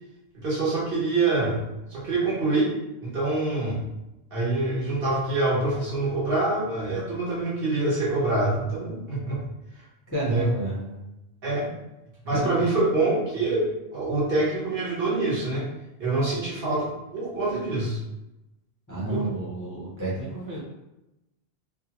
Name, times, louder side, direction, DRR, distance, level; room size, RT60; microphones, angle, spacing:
voice 1, 0.3-1.6 1.9-2.7 3.0-3.8 4.3-9.4 9.8-9.9 10.2-10.5 11.4-11.7 12.2-15.7 16.0-18.0 19.1-19.2, right 2 dB, 55° right, -7 dB, 1.1 m, -25 dB
voice 2, 10.1-11.0 12.3-12.6 18.9-20.6, right 2 dB, 25° left, -7 dB, 0.5 m, -31 dB
2.6 x 2.3 x 2.8 m, 0.96 s
omnidirectional pair, 1.1 m